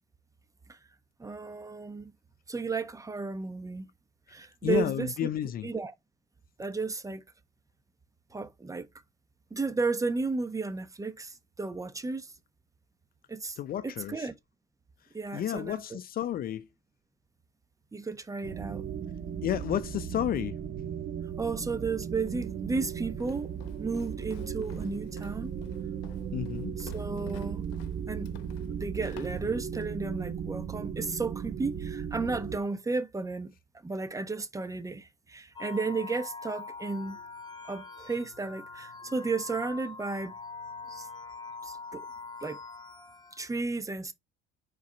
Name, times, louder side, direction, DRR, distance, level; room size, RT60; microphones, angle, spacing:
voice 1, 1.2-2.1 2.5-3.9 4.3-5.3 5.6-5.9 6.6-7.2 8.3-8.9 9.5-12.3 13.3-13.6 13.8-14.3 15.1-16.0 17.9-18.8 21.4-23.5 23.8-25.5 26.8-27.6 28.1-28.3 28.7-33.5 33.8-37.2 37.7-40.3 40.9-41.1 41.6-42.1 42.4-42.6 43.3-44.1, right 3 dB, 15° right, 1.0 m, -33 dB
voice 2, 4.6-5.7 13.6-14.3 15.3-16.7 19.4-20.6 26.3-26.7, left 11 dB, 45° left, 0.6 m, -31 dB
sound 1, 18.4-32.6, right 8 dB, 40° right, 1.1 m, -36 dB
Walk footsteps, 22.3-30.0, left 13 dB, 80° left, 0.9 m, -54 dB
sound 2, 35.6-43.5, left 4 dB, 20° left, 1.5 m, -44 dB
4.7 x 4.2 x 5.6 m
supercardioid pair, 95°, 21 cm